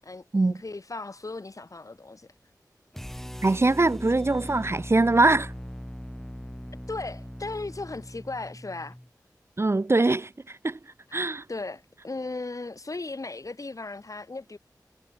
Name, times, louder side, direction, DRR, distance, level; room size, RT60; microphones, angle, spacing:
voice 1, 0.0-2.3 6.9-9.0 11.1-11.2 11.5-14.6, left 3 dB, 50° left, 6.9 m, -36 dB
sound 1, 2.9-9.1, equal, 5° left, 3.6 m, -40 dB
voice 2, 3.4-5.5 9.6-10.8 11.1-11.4, right 2 dB, 40° right, 0.9 m, -22 dB
wide cardioid pair, 75°, 7 cm